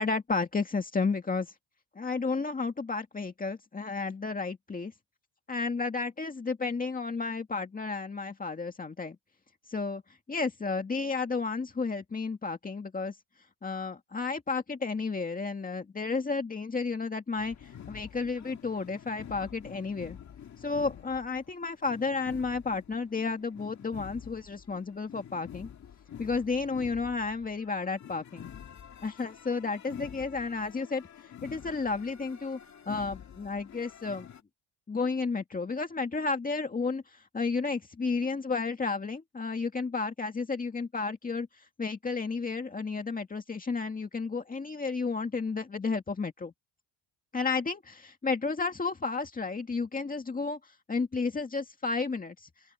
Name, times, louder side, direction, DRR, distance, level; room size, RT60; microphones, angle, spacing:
voice 1, 0.0-1.5 2.0-4.9 5.5-9.2 9.7-10.0 10.3-13.1 13.6-20.2 20.6-25.7 26.2-28.5 29.0-31.0 31.4-32.6 32.9-34.3 34.9-41.5 41.8-46.5 47.3-50.6 50.9-52.5, left 4 dB, 20° left, 2.1 m, -32 dB
sound 1, 17.4-34.4, left 9 dB, 40° left, 2.1 m, -48 dB
open air
cardioid pair, 150°, 41 cm